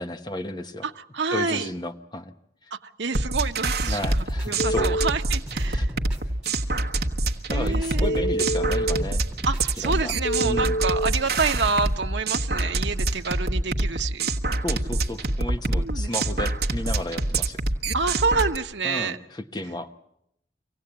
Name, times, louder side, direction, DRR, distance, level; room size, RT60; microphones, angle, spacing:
voice 1, 0.0-0.8 1.3-2.3 2.6-2.7 3.9-5.0 5.7-5.8 6.6-6.7 7.5-9.2 9.8-10.1 10.4-10.8 14.6-17.6 18.8-19.9, left 1 dB, 25° left, 8 dB, 0.9 m, -33 dB
voice 2, 0.8-1.7 2.7-4.0 4.4-5.9 7.5-8.3 9.4-14.3 15.7-16.1 17.9-19.2, right 4 dB, 85° right, 5 dB, 1.0 m, -28 dB
sound 1, 3.1-18.6, right 2 dB, 60° right, 1.2 m, -26 dB
sound 2, 4.2-4.5 4.8-5.2 5.5-6.6 7.0-7.3 7.6-8.6 8.9-10.1 10.4-10.8 11.2-12.1 12.5-12.8, right 1 dB, 5° right, 3.8 m, -41 dB
Telephone, 4.6-5.1 8.0-9.0 10.2-11.1, right 1 dB, 85° left, 0.9 m, -26 dB
25.0 x 17.0 x 8.7 m, 0.76 s
head